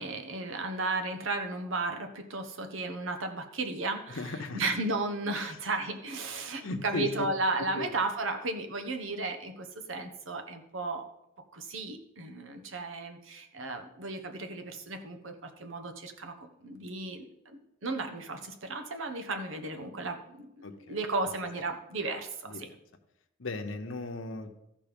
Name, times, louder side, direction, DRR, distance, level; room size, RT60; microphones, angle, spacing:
voice 1, 0.0-11.1 11.5-20.5 20.9-22.7, right 2 dB, 75° right, 6 dB, 1.1 m, -34 dB
voice 2, 4.1-4.6 5.3-5.5 6.6-7.1 7.7-7.9 20.6-21.0 22.5-22.7 23.4-24.5, left 2 dB, 70° left, 5 dB, 1.0 m, -36 dB
13.5 x 5.4 x 5.3 m, 0.85 s
head